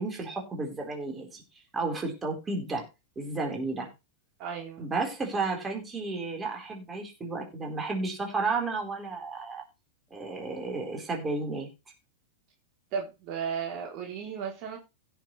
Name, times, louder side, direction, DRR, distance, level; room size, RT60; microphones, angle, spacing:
voice 1, 0.0-1.4 1.7-2.8 3.2-3.9 4.8-9.6 10.1-11.7, right 3 dB, 20° right, 1 dB, 4.3 m, -32 dB
voice 2, 4.4-4.9 12.9-14.8, right 7 dB, 45° right, 0 dB, 3.3 m, -34 dB
16.5 x 7.4 x 3.3 m, 0.26 s
hypercardioid pair, 105°, 0 cm